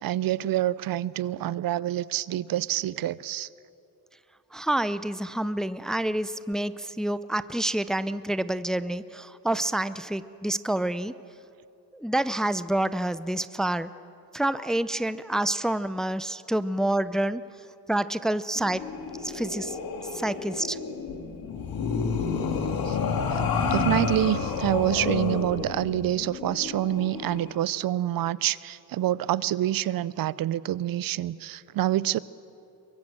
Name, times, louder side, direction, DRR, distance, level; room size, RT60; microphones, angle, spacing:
voice 1, 0.0-3.5 22.9-23.0 23.3-23.4 23.7-32.2, right 13 dB, 65° right, 20 dB, 0.6 m, -27 dB
voice 2, 4.5-11.1 11.9-13.9 14.3-17.4 17.9-18.9 19.2-19.8 20.1-20.8, right 1 dB, ahead, 14 dB, 0.5 m, -28 dB
sound 1, 18.6-27.5, left 5 dB, 65° left, 2.3 m, -30 dB
24.0 x 22.5 x 7.5 m, 2.7 s
cardioid pair, 110°, 37 cm